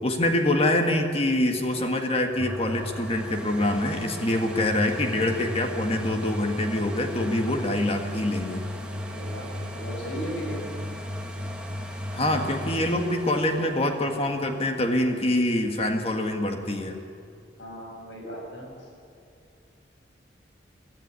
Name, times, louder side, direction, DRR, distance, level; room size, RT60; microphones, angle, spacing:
voice 1, 0.0-8.7 12.1-17.0, left 1 dB, 35° left, 4 dB, 1.7 m, -25 dB
sound 1, 2.4-16.1 16.6-16.7, equal, 5° right, 2.0 m, -36 dB
voice 2, 9.1-10.7 17.6-18.9, equal, 85° left, 0 dB, 6.6 m, -37 dB
22.5 x 14.5 x 9.7 m, 2.5 s
head